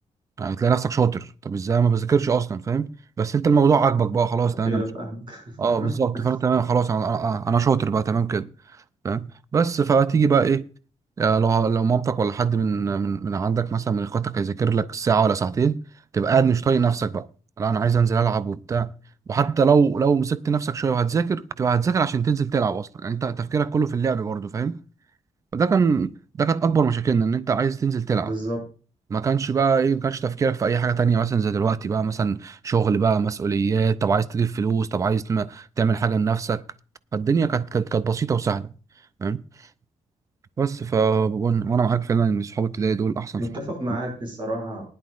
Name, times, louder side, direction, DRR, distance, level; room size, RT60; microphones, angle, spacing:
voice 1, 0.4-2.9 3.2-4.8 5.6-8.5 9.0-10.7 11.2-15.8 16.1-17.3 17.6-18.9 19.3-24.8 25.5-28.3 29.1-36.6 37.1-38.7 39.2-39.4 40.6-43.4 43.9-44.0, right 6 dB, 25° right, 0.4 m, -22 dB
voice 2, 4.6-5.4 5.8-5.9 28.2-28.6 43.4-44.8, right 1 dB, 40° right, 6.1 m, -30 dB
19.0 x 10.5 x 2.5 m
wide cardioid pair, 175°, 12 cm